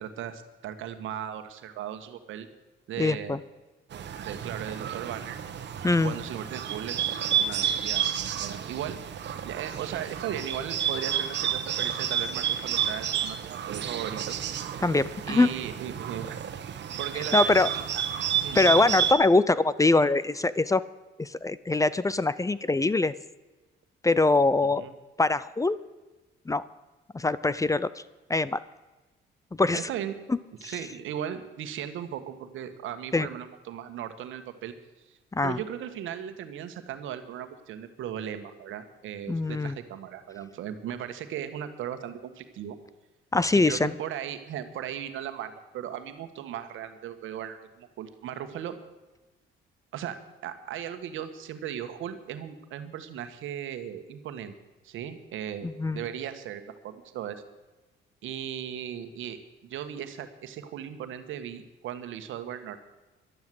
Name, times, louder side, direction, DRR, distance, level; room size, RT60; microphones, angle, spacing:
voice 1, 0.0-2.5 2.9-3.4 4.2-5.4 6.0-8.1 8.4-14.4 15.2-16.4 17.0-17.8 18.4-18.6 24.8-24.9 29.7-30.2 30.6-34.7 35.4-42.8 43.6-48.8 49.9-50.2 50.4-54.5 54.8-57.4 58.2-59.4 59.7-62.8, right 9 dB, 80° right, 9 dB, 1.4 m, -37 dB
voice 2, 3.0-3.4 5.8-6.1 14.8-15.5 17.3-17.7 18.5-20.8 21.2-23.1 24.0-24.8 25.2-25.8 26.5-26.6 27.1-27.9 28.3-28.6 29.6-29.8 30.6-30.7 33.1-33.3 35.3-35.6 39.3-39.8 43.3-43.9 55.6-56.0, left 3 dB, 15° left, 17 dB, 0.6 m, -23 dB
Bird, 3.9-19.1, right 9 dB, 60° right, 1.3 m, -30 dB
12.0 x 11.0 x 7.8 m, 1.1 s
cardioid pair, 90°, 20 cm